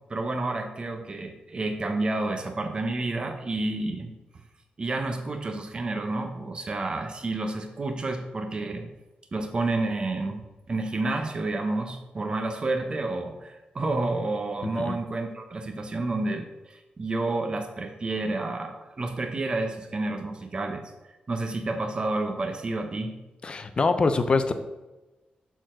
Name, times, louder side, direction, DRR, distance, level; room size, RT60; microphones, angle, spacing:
voice 1, 0.1-4.1 4.8-8.9 9.3-10.4 10.7-23.1, right 2 dB, 30° right, 5 dB, 0.8 m, -30 dB
voice 2, 14.6-15.0 23.4-24.5, left 4 dB, 35° left, 9 dB, 0.6 m, -24 dB
6.7 x 4.0 x 6.2 m, 1.1 s
wide cardioid pair, 170°, 3 cm